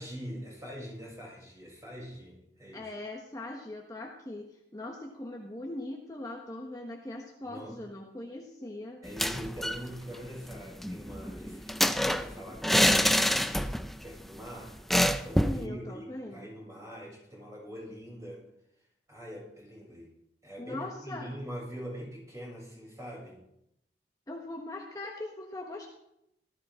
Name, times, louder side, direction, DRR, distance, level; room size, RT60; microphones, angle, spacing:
voice 1, 0.0-2.9 7.4-7.8 9.0-13.2 14.0-14.8 15.2-18.4 19.1-20.1 20.4-23.4, equal, 20° right, -4 dB, 7.5 m, -43 dB
voice 2, 2.7-9.0 15.4-16.5 20.6-21.3 24.3-25.9, left 1 dB, 20° left, 0 dB, 1.4 m, -40 dB
sound 1, 9.0-9.9 10.1-10.2 10.5-14.0 14.3-14.4 14.9-15.6, equal, ahead, 0.5 m, -26 dB
17.5 x 14.5 x 3.8 m, 0.79 s
head